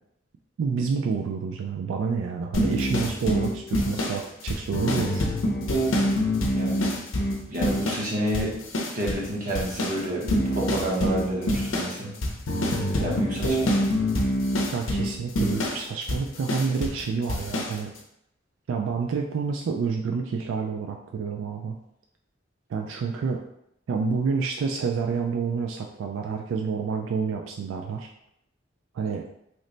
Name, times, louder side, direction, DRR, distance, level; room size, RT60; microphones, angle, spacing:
voice 1, 0.6-5.2 14.7-17.9 18.7-21.8 22.7-23.4 23.9-28.1 28.9-29.2, right 5 dB, 85° right, 2 dB, 0.3 m, -28 dB
sound 1, 2.5-8.1 8.3-9.3 9.5-17.0 17.3-17.7, equal, 90° left, 0.6 m, -26 dB
voice 2, 6.5-6.9 7.5-12.1 13.0-13.8, right 1 dB, 45° right, -3 dB, 0.8 m, -29 dB
3.1 x 2.1 x 3.8 m, 0.77 s
head